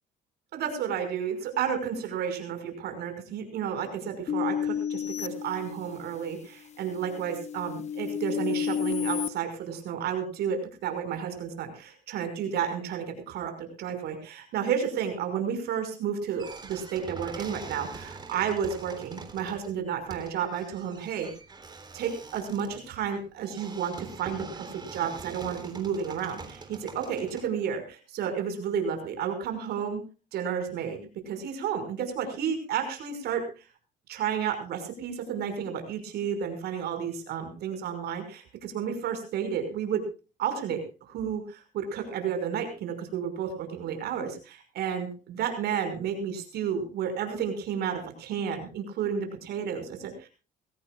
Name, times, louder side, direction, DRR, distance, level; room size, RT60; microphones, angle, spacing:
voice 1, 0.5-21.3 21.9-30.0 30.3-33.7 34.1-40.0 40.4-40.8 41.1-50.3, right 7 dB, 75° right, 7 dB, 5.8 m, -32 dB
sound 1, 4.3-6.2 6.8-9.3, left 8 dB, 40° left, 1.1 m, -31 dB
sound 2, 16.4-27.4, right 4 dB, 25° right, 3.6 m, -44 dB
23.0 x 16.5 x 2.4 m, 0.34 s
cardioid pair, 110°, 17 cm